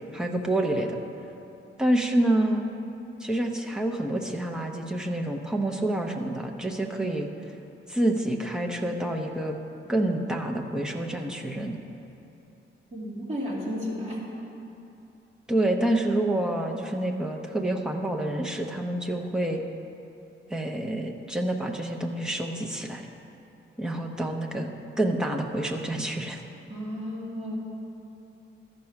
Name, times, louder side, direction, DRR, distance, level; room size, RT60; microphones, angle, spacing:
voice 1, 0.1-1.0 1.8-2.7 3.2-7.3 7.9-9.6 9.9-11.8 15.5-19.6 20.5-23.1 23.8-24.7 25.0-26.4, right 1 dB, 5° right, 1 dB, 0.6 m, -27 dB
voice 2, 12.9-14.2 26.7-27.6, equal, 30° right, -6 dB, 2.2 m, -33 dB
13.5 x 5.3 x 5.8 m, 2.8 s
wide cardioid pair, 175°, 21 cm